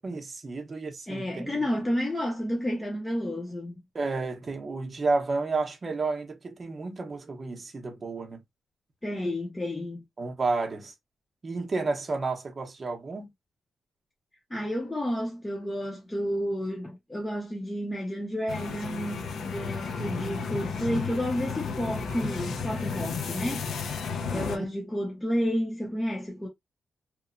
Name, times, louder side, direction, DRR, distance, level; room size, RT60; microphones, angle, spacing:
voice 1, 0.0-1.6 3.9-8.4 10.2-10.9 11.4-13.3 24.3-24.6, right 3 dB, 30° right, 0.7 m, -31 dB
voice 2, 1.1-3.8 9.0-10.0 14.5-23.7 24.3-26.5, equal, 10° left, 0.5 m, -31 dB
sound 1, 18.5-24.6, left 5 dB, 70° left, 0.5 m, -33 dB
2.9 x 2.1 x 2.4 m
wide cardioid pair, 160°, 0 cm